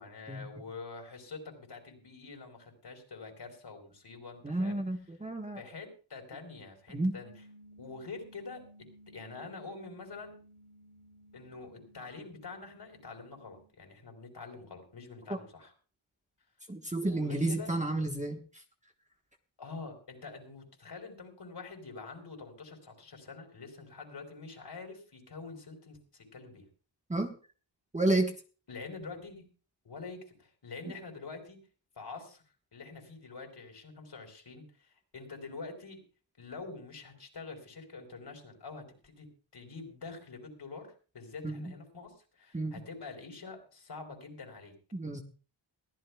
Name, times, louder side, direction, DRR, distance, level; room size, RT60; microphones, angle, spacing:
voice 1, 0.0-4.8 5.6-7.3 7.8-8.6 9.1-10.4 11.3-15.7 17.0-17.7 19.6-26.6 28.7-29.4 29.8-31.6 32.0-32.4 32.7-36.0 36.4-39.3 39.5-40.9 41.1-44.7, left 4 dB, 55° left, 3 dB, 4.4 m, -46 dB
voice 2, 4.4-5.6 6.9-7.1 15.3-15.4 16.7-18.6 27.1-27.3 27.9-28.3 30.9-31.0 41.4-41.7 42.5-42.8 44.9-45.2, right 2 dB, 15° right, 3 dB, 1.3 m, -31 dB
sound 1, 7.2-13.6, equal, 75° right, 7.0 m, -58 dB
22.5 x 14.0 x 2.3 m, 0.38 s
wide cardioid pair, 90°, 49 cm